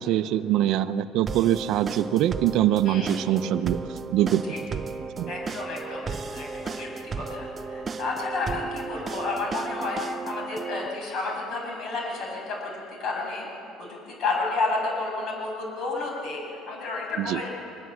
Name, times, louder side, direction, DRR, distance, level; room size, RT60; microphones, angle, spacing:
voice 1, 0.0-4.4 4.7-4.8 5.2-5.3 17.2-17.4, right 12 dB, 60° right, 12 dB, 0.7 m, -24 dB
sound 1, 1.3-10.9, right 4 dB, 25° right, 0.7 m, -35 dB
voice 2, 5.3-12.7 13.0-13.5 13.8-17.5, left 3 dB, 45° left, -1 dB, 7.6 m, -31 dB
24.5 x 21.0 x 7.8 m, 2.7 s
cardioid pair, 155°, 0 cm